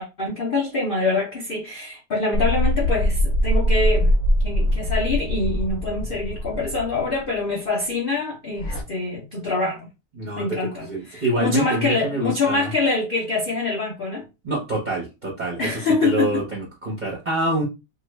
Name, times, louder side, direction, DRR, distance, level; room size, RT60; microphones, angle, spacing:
voice 1, 0.0-4.1 4.4-9.9 10.3-14.3 15.6-16.4, left 3 dB, 85° left, 0.4 m, -25 dB
sound 1, 2.3-7.2 8.6-8.8, equal, 60° left, 0.8 m, -22 dB
voice 2, 10.2-12.7 14.4-15.7 16.0-17.6, right 2 dB, 40° right, 0.7 m, -26 dB
2.7 x 2.4 x 3.0 m
omnidirectional pair, 1.9 m